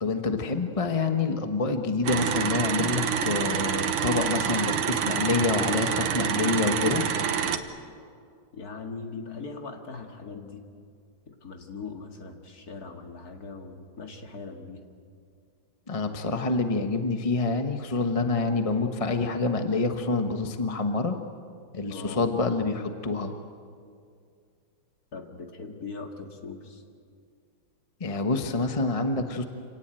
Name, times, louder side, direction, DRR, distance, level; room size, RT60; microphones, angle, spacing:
voice 1, 0.0-7.1 15.9-21.2 21.7-23.3 28.0-29.4, left 3 dB, 25° left, 6 dB, 0.9 m, -27 dB
sound 1, 2.0-7.6, right 7 dB, 80° right, 2.0 m, -27 dB
voice 2, 8.5-10.6 11.3-14.8 21.9-22.3 25.1-26.8, left 4 dB, 45° left, 3 dB, 2.4 m, -40 dB
27.0 x 18.0 x 9.0 m, 2.3 s
omnidirectional pair, 2.3 m